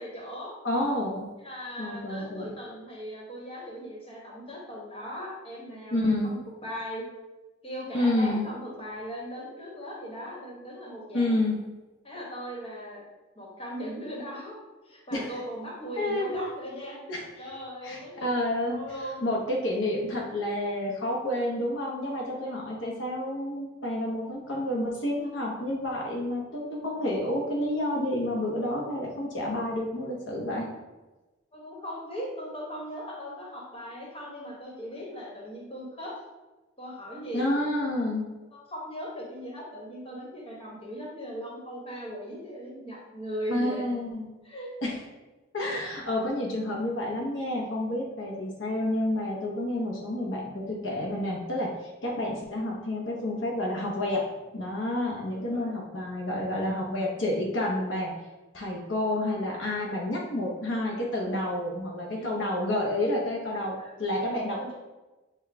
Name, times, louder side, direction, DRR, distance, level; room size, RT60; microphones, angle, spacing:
voice 1, 0.0-0.5 1.4-6.2 6.6-7.0 7.6-11.4 12.0-13.0 13.3-14.5 14.8-17.0 17.4-18.3 18.7-19.2 22.4-22.5 31.5-36.2 36.8-37.5 38.5-43.8 44.4-44.7 49.7-49.9 55.3-55.8 57.2-57.3 62.2-62.4 63.8-63.9 64.5-64.7, equal, 30° left, -4 dB, 1.2 m, -38 dB
voice 2, 0.6-1.3 1.8-2.5 5.9-6.3 7.9-8.5 11.1-11.6 15.1-15.3 16.0-16.5 17.1-17.3 17.8-18.8 19.2-30.7 37.3-38.3 43.5-44.3 44.8-45.0 45.5-54.2 54.5-58.1 58.5-64.6, left 1 dB, 70° left, -3 dB, 0.8 m, -29 dB
6.7 x 2.3 x 3.5 m, 1.1 s
head